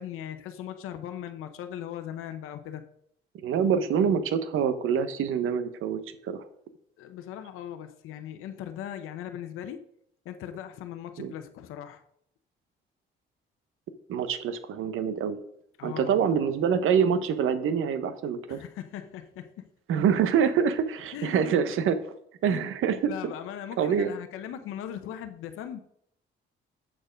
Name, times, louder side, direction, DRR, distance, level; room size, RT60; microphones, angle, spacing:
voice 1, 0.0-2.8 7.0-9.8 10.2-12.0 15.8-16.3 18.5-19.7 21.1-21.6 22.5-22.7 23.1-25.8, left 10 dB, 85° left, 8 dB, 0.8 m, -39 dB
voice 2, 3.4-6.4 11.2-11.3 14.1-15.4 15.8-18.6 19.9-22.1 22.4-23.1 23.8-24.1, right 7 dB, 75° right, 11 dB, 1.0 m, -26 dB
7.6 x 6.6 x 5.1 m, 0.71 s
supercardioid pair, 65°, 21 cm